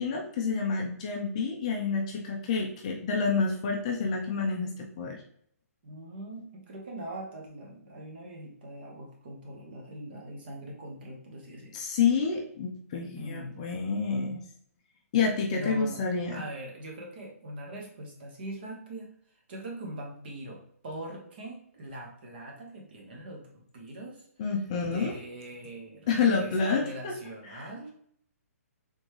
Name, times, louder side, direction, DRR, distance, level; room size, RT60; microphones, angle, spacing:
voice 1, 0.0-5.2 11.7-14.4 15.1-16.4 24.4-25.2 26.1-27.1 27.5-27.7, left 5 dB, 25° left, 0 dB, 0.5 m, -28 dB
voice 2, 5.8-11.8 13.2-13.7 15.5-16.0 16.3-19.1 19.5-24.3 24.8-27.9, right 1 dB, 40° right, -1 dB, 1.3 m, -42 dB
3.9 x 3.5 x 3.1 m, 0.64 s
hypercardioid pair, 170°, 8 cm